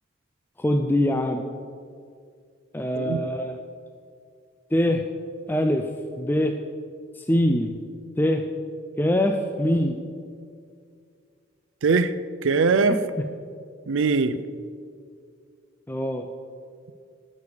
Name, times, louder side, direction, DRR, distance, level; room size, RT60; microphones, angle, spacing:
voice 1, 0.6-1.4 2.7-3.6 4.7-5.0 5.5-5.9 6.2-6.5 7.2-7.8 8.2-8.4 9.0-10.0 12.9-13.2 15.9-16.3, left 1 dB, 10° left, 5 dB, 0.4 m, -23 dB
voice 2, 11.8-12.1 12.4-13.0 13.9-14.4, right 4 dB, 65° right, 13 dB, 0.5 m, -21 dB
18.0 x 6.6 x 5.0 m, 2.3 s
head